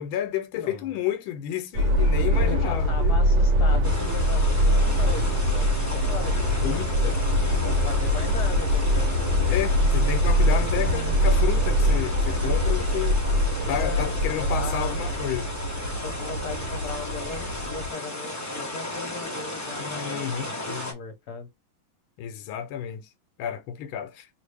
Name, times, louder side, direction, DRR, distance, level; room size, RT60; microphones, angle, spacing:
voice 1, 0.0-3.2 6.6-7.2 9.5-13.2 13.7-15.5 19.8-20.5 22.2-23.1 23.4-24.3, left 10 dB, 85° left, 1.5 m, -31 dB
voice 2, 0.5-1.0 2.4-6.8 7.2-9.2 13.8-15.2 16.0-21.5, left 5 dB, 60° left, 1.4 m, -38 dB
Subway metro underground, 1.7-17.9, equal, 70° right, 1.6 m, -23 dB
sound 1, 3.8-20.9, left 1 dB, 15° left, 0.6 m, -35 dB
3.3 x 2.6 x 3.3 m
omnidirectional pair, 2.2 m